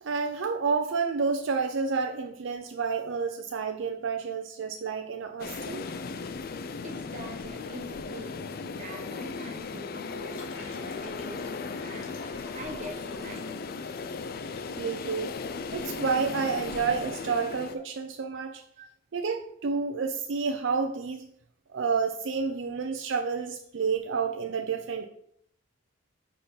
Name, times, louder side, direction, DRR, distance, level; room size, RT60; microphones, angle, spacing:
voice 1, 0.0-5.8 14.8-15.3 15.7-18.6 19.1-21.3 21.7-25.1, right 5 dB, 60° right, 5 dB, 0.4 m, -30 dB
sound 1, 5.4-17.8, left 4 dB, 45° left, 0.4 m, -37 dB
voice 2, 6.6-13.7 17.2-17.3 18.8-18.9, right 1 dB, 35° right, 3 dB, 1.0 m, -44 dB
sound 2, 10.1-15.0, left 2 dB, 65° left, 1.7 m, -51 dB
5.0 x 4.4 x 5.5 m, 0.70 s
head